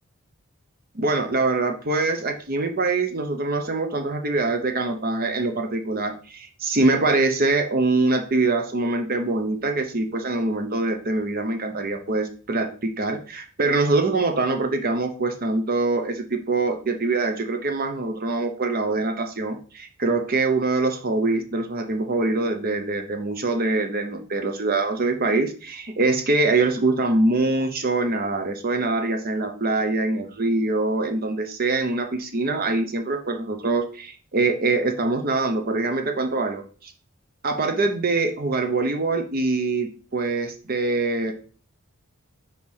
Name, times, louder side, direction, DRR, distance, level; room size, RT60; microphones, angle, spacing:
voice 1, 0.9-36.9 37.4-41.3, right 3 dB, 40° right, 6 dB, 0.7 m, -24 dB
4.8 x 4.6 x 5.5 m, 0.40 s
head